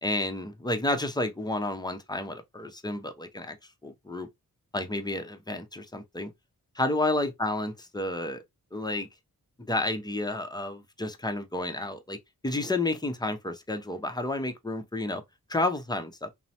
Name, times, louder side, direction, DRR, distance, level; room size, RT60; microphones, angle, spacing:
voice 1, 0.0-3.6 3.8-4.3 4.7-6.3 6.8-8.4 8.7-9.1 9.6-12.2 12.4-15.2 15.5-16.3, left 2 dB, 10° left, 0.6 m, -31 dB
3.0 x 2.1 x 2.7 m
cardioid pair, 50°, 38 cm